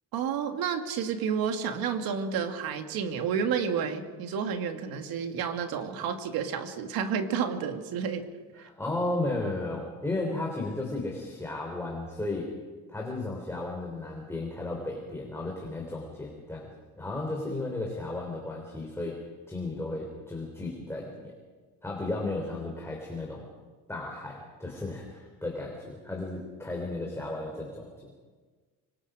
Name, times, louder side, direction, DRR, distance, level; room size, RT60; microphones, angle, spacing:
voice 1, 0.1-8.2 8.6-8.7, right 7 dB, 80° right, 5 dB, 2.5 m, -30 dB
voice 2, 8.6-12.5 12.9-16.7 17.0-19.2 19.5-21.3 21.8-23.5 23.9-27.9, left 2 dB, 5° left, -1 dB, 3.7 m, -34 dB
26.0 x 25.0 x 5.1 m, 1.4 s
cardioid pair, 150°, 36 cm